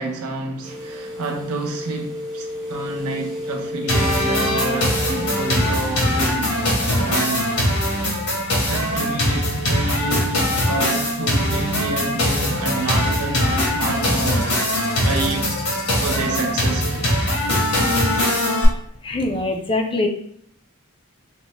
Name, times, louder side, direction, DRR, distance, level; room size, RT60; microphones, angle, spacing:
voice 1, 0.0-7.8 8.7-17.0, right 2 dB, 85° right, 0.6 m, -29 dB
sound 1, 0.6-17.8, left 1 dB, 20° right, 0.8 m, -36 dB
sound 2, 3.9-18.7, left 1 dB, 90° left, 1.1 m, -21 dB
sound 3, 13.9-16.4, left 4 dB, 75° left, 0.6 m, -37 dB
voice 2, 19.0-20.1, left 2 dB, 25° left, 0.3 m, -23 dB
3.7 x 2.1 x 2.9 m
head